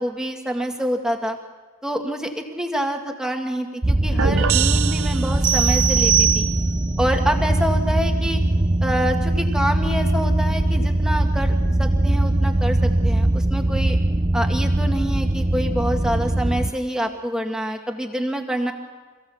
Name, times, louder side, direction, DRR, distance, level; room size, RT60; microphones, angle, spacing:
voice 1, 0.0-1.4 1.8-6.5 7.0-8.4 8.8-14.0 14.3-18.7, equal, 5° right, 3 dB, 1.9 m, -26 dB
sound 1, 3.8-16.7, right 1 dB, 20° right, 0.7 m, -21 dB
sound 2, 4.2-5.9, right 7 dB, 80° right, 0.9 m, -24 dB
sound 3, 5.4-7.0, right 9 dB, 40° right, 1.1 m, -21 dB
27.0 x 16.0 x 7.2 m, 1.3 s
head